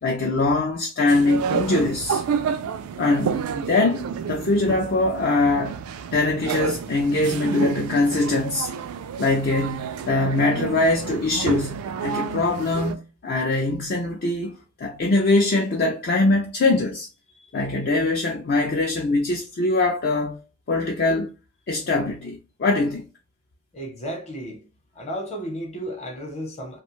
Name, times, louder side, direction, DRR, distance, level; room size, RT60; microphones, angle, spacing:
voice 1, 0.0-2.2 3.0-5.8 6.1-8.7 9.2-17.1 17.5-20.4 20.7-21.3 21.7-23.0, left 2 dB, 45° left, 0.4 m, -22 dB
sound 1, 1.1-12.9, right 6 dB, 80° right, 0.3 m, -30 dB
voice 2, 23.7-24.7 24.9-26.8, equal, 30° left, 0.8 m, -34 dB
2.5 x 2.2 x 2.9 m
head